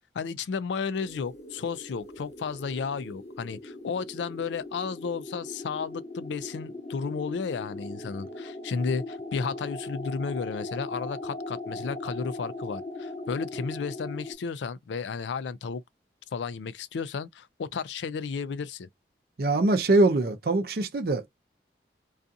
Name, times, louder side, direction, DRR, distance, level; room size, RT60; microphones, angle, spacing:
voice 1, 0.1-15.8 16.3-18.9, left 5 dB, 80° left, 0.4 m, -33 dB
sound 1, 1.0-14.3, left 2 dB, 40° left, 0.8 m, -39 dB
voice 2, 19.4-21.2, right 2 dB, 55° right, 0.5 m, -23 dB
2.6 x 2.4 x 2.3 m
head